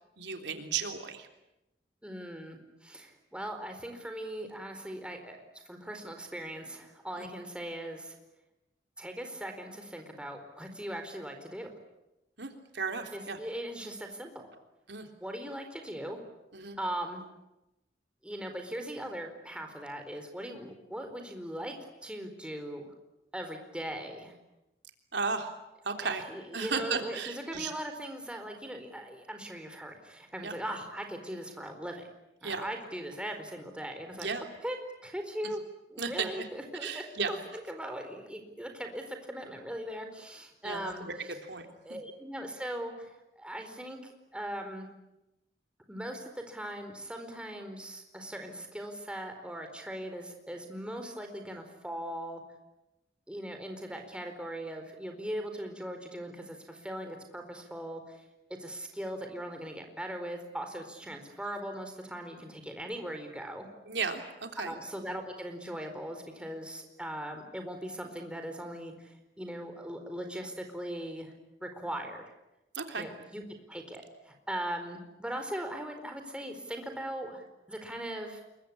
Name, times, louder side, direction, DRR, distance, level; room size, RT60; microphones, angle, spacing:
voice 1, 0.2-1.3 7.2-7.3 12.4-13.4 14.9-15.1 16.5-16.8 25.1-25.5 25.8-26.2 26.5-27.7 30.4-30.5 32.4-32.7 34.2-34.4 36.0-36.5 36.8-37.4 40.6-41.2 41.4-42.0 63.8-64.7 72.7-73.0, right 5 dB, 80° right, 4 dB, 3.4 m, -35 dB
voice 2, 2.0-5.4 5.7-8.1 9.0-11.7 13.1-14.5 15.2-16.2 16.8-17.2 18.2-21.8 22.0-22.9 23.3-24.3 26.0-32.0 32.4-34.3 34.6-34.8 35.0-35.6 35.9-37.4 37.7-41.1 41.8-44.9 45.9-52.4 53.3-58.2 58.6-63.7 64.6-71.3 71.6-72.2 73.0-73.4 73.7-78.4, right 1 dB, 5° right, 4 dB, 4.4 m, -39 dB
28.0 x 23.0 x 8.8 m, 0.95 s
head